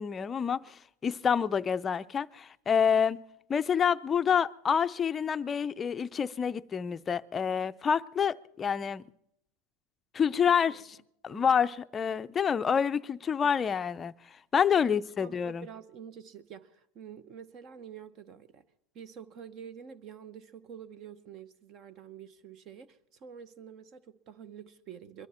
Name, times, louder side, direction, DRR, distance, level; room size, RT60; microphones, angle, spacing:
voice 1, 0.0-3.2 3.5-9.0 10.1-10.8 11.2-14.1 14.5-15.7, left 7 dB, 20° left, 0.5 m, -27 dB
voice 2, 14.8-18.6 18.9-25.3, right 8 dB, 35° right, 0.8 m, -48 dB
22.5 x 13.0 x 4.3 m
supercardioid pair, 140°, 0 cm